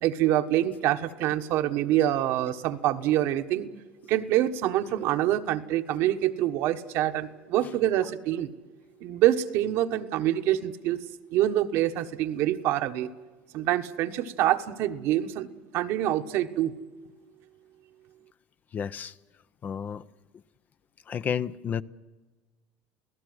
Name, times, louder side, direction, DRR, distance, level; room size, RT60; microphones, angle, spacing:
voice 1, 0.0-3.7 4.0-8.5 9.0-11.0 11.3-13.1 13.5-15.5 15.7-16.7, right 13 dB, 65° right, 1.4 m, -26 dB
voice 2, 18.7-19.1 19.6-20.0 21.1-21.8, left 8 dB, 35° left, 0.7 m, -31 dB
28.5 x 17.5 x 8.0 m
supercardioid pair, 105°, 5 cm